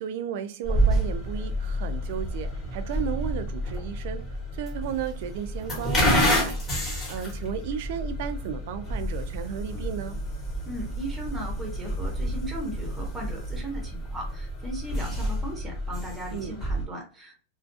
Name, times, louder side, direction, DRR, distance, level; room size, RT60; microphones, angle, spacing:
voice 1, 0.0-6.6 7.1-10.2 16.3-16.6, right 8 dB, 55° right, 0.3 m, -34 dB
sound 1, 0.6-16.8, equal, 20° left, 0.9 m, -29 dB
voice 2, 10.6-17.4, right 1 dB, 10° right, 0.7 m, -37 dB
2.4 x 2.1 x 2.5 m
supercardioid pair, 160°, 0 cm